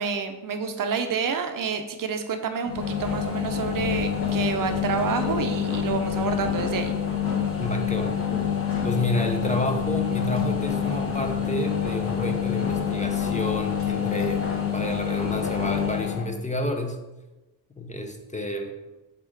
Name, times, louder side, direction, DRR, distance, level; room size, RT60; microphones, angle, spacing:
voice 1, 0.0-6.9, right 5 dB, 60° right, 7 dB, 0.6 m, -28 dB
sound 1, 2.7-16.2, left 8 dB, 35° left, 1.1 m, -27 dB
voice 2, 7.6-8.2 8.8-17.0 17.8-18.7, left 1 dB, 20° left, 4 dB, 0.5 m, -30 dB
5.6 x 3.7 x 4.6 m, 1.1 s
wide cardioid pair, 135°, 38 cm